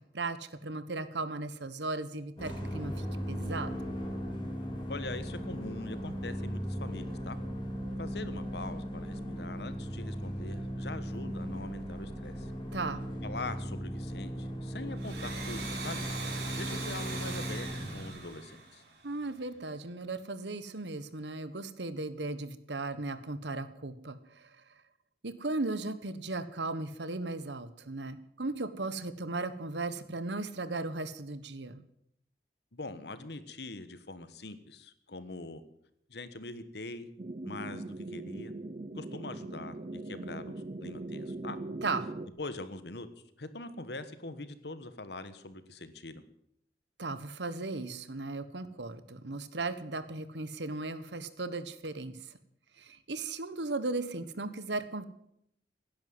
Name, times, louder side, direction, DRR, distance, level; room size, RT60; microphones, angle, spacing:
voice 1, 0.1-3.9 12.7-13.0 19.0-24.2 25.2-31.8 41.8-42.1 47.0-52.2 52.8-55.0, right 3 dB, 85° right, 12 dB, 1.3 m, -36 dB
sound 1, 2.4-18.1, equal, 25° left, 3.0 m, -37 dB
voice 2, 4.9-7.4 8.0-12.5 13.2-16.0 16.5-18.8 32.7-35.6 36.1-37.1 37.4-38.5 38.9-41.6 42.4-43.1 43.4-46.2, left 2 dB, 70° left, 12 dB, 1.4 m, -43 dB
Domestic sounds home sounds, 14.9-19.4, right 3 dB, 70° right, 5.1 m, -41 dB
sound 2, 37.2-42.3, right 2 dB, 40° right, 0.6 m, -40 dB
17.0 x 10.5 x 7.9 m, 0.74 s
head